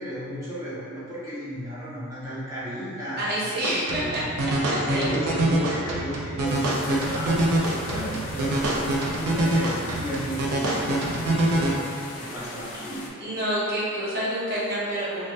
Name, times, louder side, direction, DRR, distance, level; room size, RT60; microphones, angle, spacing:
voice 1, 0.0-4.2 4.7-11.7 12.2-13.1, equal, 15° right, -10 dB, 0.4 m, -33 dB
voice 2, 3.2-4.2 4.9-5.2 13.2-15.3, right 1 dB, 45° right, -9 dB, 0.8 m, -28 dB
sound 1, 3.6-11.7, right 1 dB, 85° right, 0.5 m, -25 dB
sound 2, 6.4-13.1, left 2 dB, 90° left, 0.5 m, -40 dB
2.7 x 2.1 x 3.3 m, 2.2 s
head